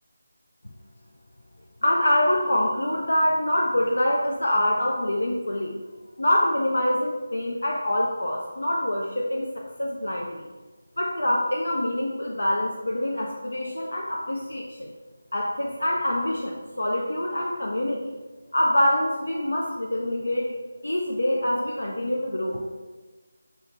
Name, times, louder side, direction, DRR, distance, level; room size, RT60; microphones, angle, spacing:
voice 1, 1.8-5.7 6.2-10.5 11.0-14.9 15.3-18.1 18.5-20.5 20.8-22.6, left 1 dB, 75° left, -1 dB, 0.5 m, -25 dB
5.5 x 2.1 x 2.9 m, 1.2 s
figure-of-eight pair, 160°, 0 cm